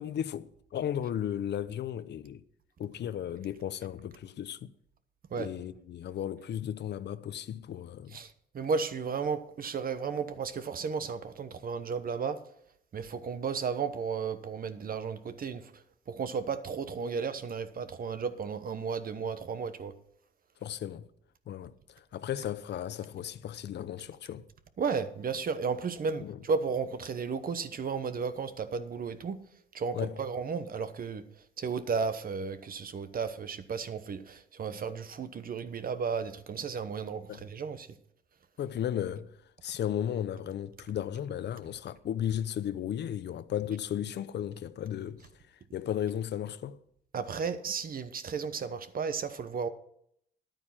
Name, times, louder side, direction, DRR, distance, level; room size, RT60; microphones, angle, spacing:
voice 1, 0.0-2.4 2.8-4.7 5.4-8.2 20.6-21.1 21.5-24.4 26.2-26.4 29.9-30.2 37.3-37.4 38.6-45.3 45.7-46.8, left 10 dB, 60° left, 0.7 m, -35 dB
voice 2, 8.1-12.4 12.9-19.9 24.8-29.4 29.7-37.9 47.1-49.7, right 5 dB, 45° right, 1.0 m, -34 dB
10.5 x 9.0 x 5.9 m
cardioid pair, 90°, 20 cm